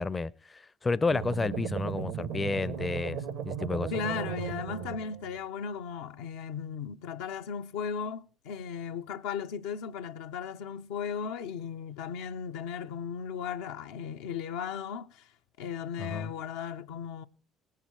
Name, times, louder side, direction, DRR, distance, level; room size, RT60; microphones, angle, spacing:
voice 1, 0.0-3.2 3.5-3.9 16.0-16.3, left 3 dB, 25° left, 0.5 m, -31 dB
sound 1, 1.1-5.4, right 8 dB, 70° right, 1.0 m, -36 dB
voice 2, 3.9-15.3 15.6-17.3, left 7 dB, 75° left, 0.5 m, -36 dB
19.5 x 7.4 x 4.3 m
hypercardioid pair, 55°, 0 cm